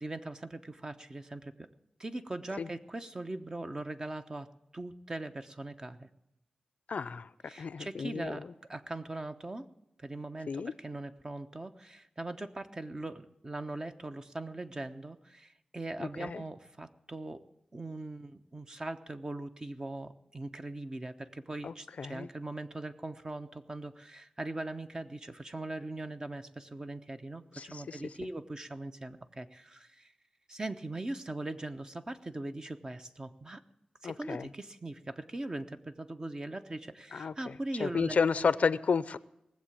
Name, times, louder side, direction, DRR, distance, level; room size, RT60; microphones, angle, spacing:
voice 1, 0.0-1.7 2.0-6.1 7.5-9.7 10.0-17.4 17.7-30.1 30.5-33.6 34.0-38.5, right 2 dB, 30° right, 8 dB, 0.9 m, -41 dB
voice 2, 6.9-7.3 7.6-8.3 10.5-10.7 16.0-16.4 21.6-22.3 27.6-27.7 34.0-34.5 37.1-37.3 37.8-39.2, left 5 dB, 70° left, 17 dB, 0.5 m, -31 dB
19.0 x 7.6 x 8.6 m, 0.85 s
cardioid pair, 65°, 2 cm